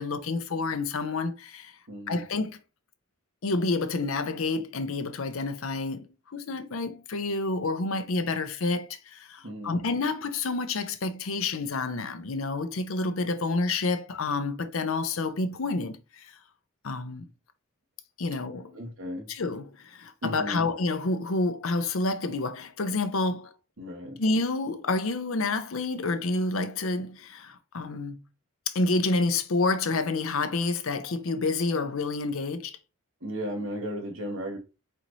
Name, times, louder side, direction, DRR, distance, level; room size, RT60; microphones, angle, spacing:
voice 1, 0.0-1.8 2.1-2.6 3.4-16.4 16.8-17.3 18.2-18.8 19.3-23.5 24.2-28.2 28.7-32.8, left 3 dB, 75° left, 0.6 m, -29 dB
voice 2, 1.9-2.2 9.4-9.8 18.7-19.3 20.2-20.6 23.8-24.2 33.2-34.6, equal, 65° right, 1.4 m, -35 dB
4.3 x 3.9 x 3.1 m
head